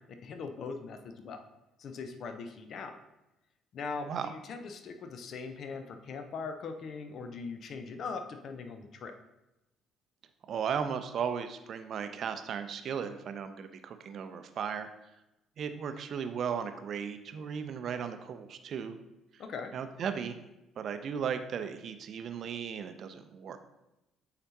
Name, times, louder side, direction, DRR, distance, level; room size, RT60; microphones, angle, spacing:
voice 1, 0.2-1.4 1.8-3.0 3.7-9.1 19.4-19.7, left 4 dB, 50° left, 7 dB, 0.6 m, -40 dB
voice 2, 10.5-14.9 15.6-19.0 19.3-19.4 19.7-20.4 20.8-23.6, right 7 dB, 50° right, 9 dB, 0.5 m, -36 dB
8.7 x 4.1 x 2.8 m, 0.94 s
figure-of-eight pair, 50°, 0 cm